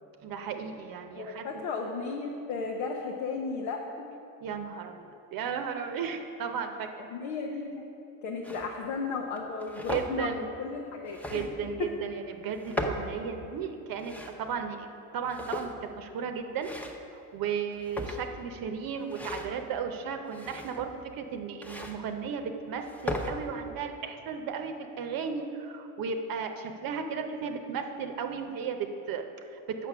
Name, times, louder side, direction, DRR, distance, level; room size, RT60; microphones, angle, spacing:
voice 1, 0.2-1.5 4.4-6.9 9.9-10.5 11.3-16.7 17.3-29.9, right 6 dB, 60° right, 6 dB, 0.8 m, -35 dB
voice 2, 1.1-4.1 7.0-7.9 8.2-11.9, left 4 dB, 90° left, 1 dB, 0.8 m, -35 dB
sound 1, 8.4-8.7 9.4-10.1 11.1-11.7 12.5-13.1 13.8-14.4 15.2-15.9 16.6-17.1 17.7-18.4 19.0-19.6 20.3-21.0 21.6-22.0 22.7-23.3, left 1 dB, 5° left, 0.7 m, -37 dB
6.8 x 6.0 x 6.0 m, 2.6 s
supercardioid pair, 90°, 39 cm